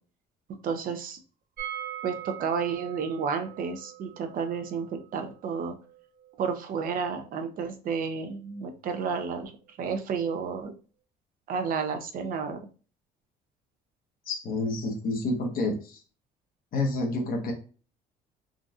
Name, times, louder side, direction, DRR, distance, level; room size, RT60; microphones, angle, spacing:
voice 1, 0.6-1.2 2.0-5.7 6.4-9.5 9.8-10.7 11.5-12.6, right 6 dB, 55° right, 6 dB, 0.6 m, -31 dB
sound 1, 1.6-7.3 7.6-7.7 8.0-8.1, right 11 dB, 75° right, 1.1 m, -42 dB
voice 2, 14.3-16.0 16.7-17.5, left 2 dB, 60° left, 3 dB, 1.0 m, -29 dB
3.8 x 2.5 x 2.4 m, 0.37 s
cardioid pair, 110°, 17 cm